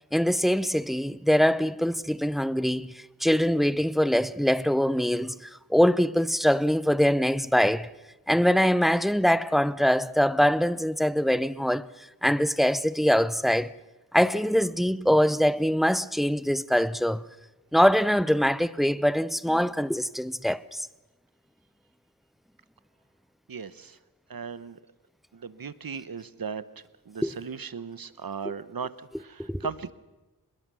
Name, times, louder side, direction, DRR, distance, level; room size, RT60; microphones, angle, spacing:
voice 1, 0.1-7.9 8.3-11.9 12.2-13.7 14.1-17.2 17.7-20.9 27.2-27.3 29.5-29.6, equal, ahead, 0.6 m, -23 dB
voice 2, 23.5-24.0 24.3-24.8 25.3-29.9, right 6 dB, 65° right, 1.0 m, -37 dB
25.0 x 20.5 x 6.3 m
wide cardioid pair, 80°, 38 cm